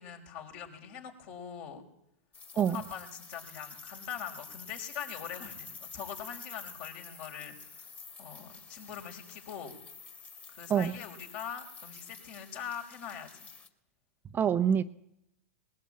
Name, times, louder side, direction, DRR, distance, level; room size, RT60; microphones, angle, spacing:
voice 1, 0.0-1.8 2.5-7.9 8.2-9.7 10.5-13.3, left 8 dB, 55° left, 3 dB, 5.0 m, -42 dB
sound 1, 2.3-13.7, left 5 dB, 20° left, 2.4 m, -49 dB
voice 2, 14.3-14.8, right 8 dB, 25° right, 10 dB, 0.8 m, -26 dB
20.5 x 17.5 x 8.7 m, 0.79 s
hypercardioid pair, 120°, 8 cm